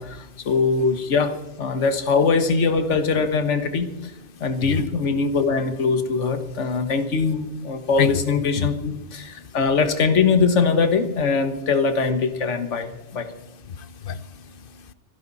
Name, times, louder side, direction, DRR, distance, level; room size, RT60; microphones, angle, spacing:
voice 1, 0.0-4.1 4.4-13.3, left 4 dB, 75° left, 9 dB, 1.6 m, -22 dB
voice 2, 13.6-14.9, left 8 dB, 55° left, 15 dB, 0.8 m, -28 dB
26.5 x 11.0 x 4.1 m, 0.89 s
omnidirectional pair, 1.3 m